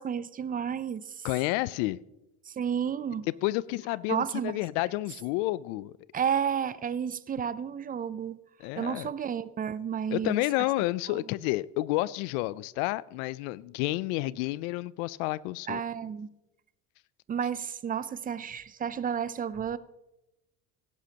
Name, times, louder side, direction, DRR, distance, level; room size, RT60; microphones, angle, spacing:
voice 1, 0.0-1.3 2.5-3.3 4.1-4.5 6.1-8.4 8.8-10.4 11.1-11.2 15.7-16.3 17.3-19.8, right 8 dB, 20° right, 17 dB, 0.4 m, -31 dB
voice 2, 1.2-2.0 3.3-5.9 8.6-9.1 10.1-15.8, left 19 dB, 80° left, 20 dB, 0.5 m, -30 dB
17.0 x 11.5 x 2.9 m, 0.96 s
supercardioid pair, 95°, 45 cm